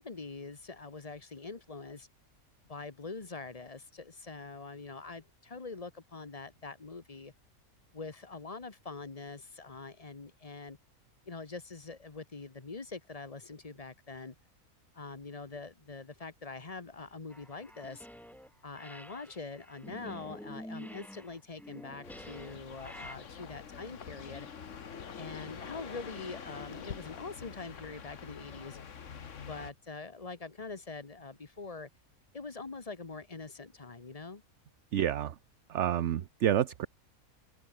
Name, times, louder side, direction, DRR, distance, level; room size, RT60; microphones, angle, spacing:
voice 1, 0.0-2.1 2.7-7.3 7.9-10.8 11.3-14.3 14.9-18.1 18.6-24.5 25.2-28.8 29.5-31.9 32.3-34.4, left 4 dB, 25° left, 1.3 m, -44 dB
sound 1, 17.3-18.5 18.8-23.2, equal, ahead, 1.3 m, -48 dB
sound 2, 22.0-29.7, left 7 dB, 60° left, 1.7 m, -46 dB
Wind, 22.4-28.8, left 8 dB, 80° left, 1.7 m, -53 dB
voice 2, 34.9-35.4 35.7-36.9, right 11 dB, 60° right, 1.0 m, -29 dB
omnidirectional pair, 1.5 m